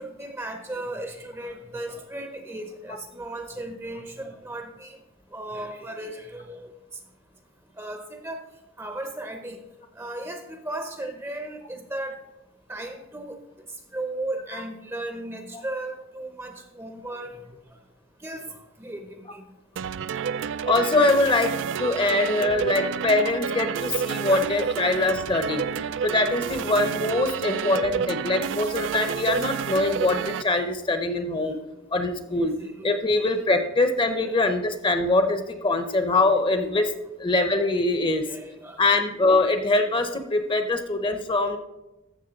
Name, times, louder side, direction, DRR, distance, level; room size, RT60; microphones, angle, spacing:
voice 1, 0.0-5.0 5.3-6.7 7.8-8.0 8.2-8.4 8.8-9.6 10.0-12.2 12.7-13.4 13.9-17.5 18.2-18.5 18.8-19.4 21.2-21.6 24.2-24.5 25.0-25.1 26.5-27.1 29.1-29.4 31.5-31.6 32.3-33.0 34.3-34.4 36.1-36.4 38.3-38.8, right 1 dB, 15° right, 6 dB, 0.6 m, -36 dB
sound 1, 19.8-30.4, right 7 dB, 65° right, 0.3 m, -30 dB
voice 2, 20.6-21.5 21.8-25.7 26.0-31.6 31.9-32.5 32.8-36.9 37.2-38.2 38.8-41.6, left 2 dB, 25° left, 8 dB, 0.7 m, -23 dB
14.5 x 6.3 x 4.0 m, 0.97 s
head